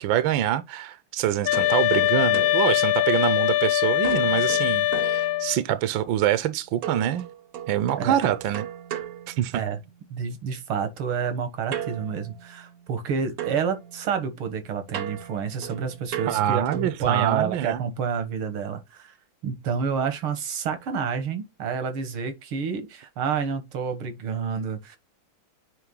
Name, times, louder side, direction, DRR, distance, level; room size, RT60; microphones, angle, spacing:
voice 1, 0.0-7.3 7.7-8.7 9.3-9.6 16.3-17.8, right 11 dB, 75° right, 1.3 m, -25 dB
sound 1, 1.4-5.6, left 16 dB, 75° left, 1.2 m, -22 dB
sound 2, 1.5-3.6 4.0-5.9 6.8-10.0 11.7-13.1 13.4-17.0, right 9 dB, 60° right, 1.0 m, -37 dB
voice 2, 10.1-19.1 19.4-25.0, right 6 dB, 90° right, 2.3 m, -29 dB
9.4 x 3.4 x 3.8 m
omnidirectional pair, 2.3 m